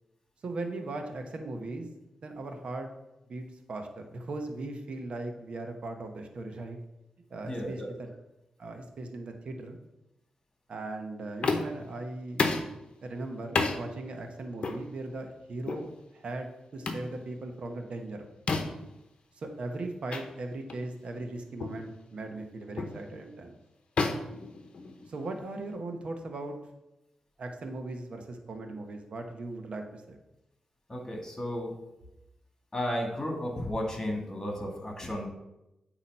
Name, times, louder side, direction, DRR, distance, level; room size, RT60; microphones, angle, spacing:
voice 1, 0.4-1.9 2.2-2.9 3.3-6.8 7.3-8.1 8.6-9.8 10.7-12.4 13.0-18.3 19.4-23.6 25.1-26.6 27.4-30.2, right 2 dB, 60° right, 4 dB, 1.0 m, -38 dB
voice 2, 7.4-7.9 30.9-31.8 32.7-35.3, left 1 dB, 25° left, 0 dB, 1.9 m, -33 dB
sound 1, 11.4-11.9 12.4-12.7 13.6-13.8 14.6-14.8 15.7-15.9 16.9-17.1 18.5-18.9 20.1-20.3 20.7-20.9 21.6-21.8 22.8-23.0 24.0-25.2, left 3 dB, 55° left, 0.8 m, -30 dB
8.4 x 3.0 x 5.5 m, 0.92 s
cardioid pair, 80°, 2 cm